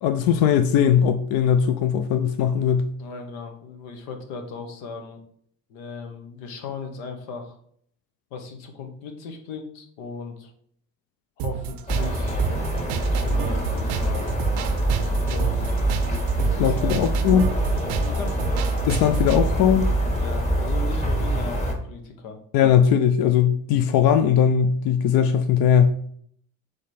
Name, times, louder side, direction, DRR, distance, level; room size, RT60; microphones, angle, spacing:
voice 1, 0.0-2.9 16.6-17.5 18.9-19.9 22.5-25.9, left 8 dB, 60° left, 0.5 m, -19 dB
voice 2, 3.0-5.2 5.7-7.6 8.3-10.5 11.4-12.5 13.1-14.3 15.3-15.7 16.3-17.0 17.9-18.3 20.1-22.7, left 5 dB, 80° left, 0.9 m, -37 dB
sound 1, 11.4-19.4, right 9 dB, 70° right, 0.5 m, -32 dB
sound 2, 11.9-21.7, right 1 dB, 15° left, 1.3 m, -24 dB
3.6 x 3.3 x 4.1 m
hypercardioid pair, 65°, 41 cm